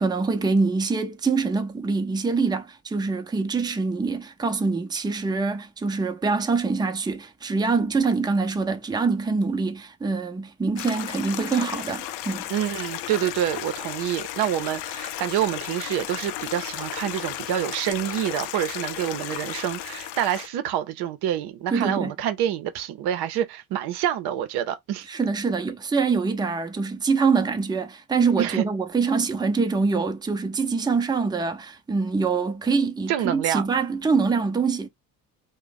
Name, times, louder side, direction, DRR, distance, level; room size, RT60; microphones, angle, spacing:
voice 1, 0.0-12.4 21.7-22.1 25.1-34.9, right 4 dB, 10° right, 0.6 m, -24 dB
Stream, 10.8-20.5, left 13 dB, 70° left, 0.5 m, -34 dB
voice 2, 12.5-25.1 28.4-28.7 33.1-33.7, right 11 dB, 70° right, 0.7 m, -27 dB
2.5 x 2.2 x 3.8 m
hypercardioid pair, 60°, 41 cm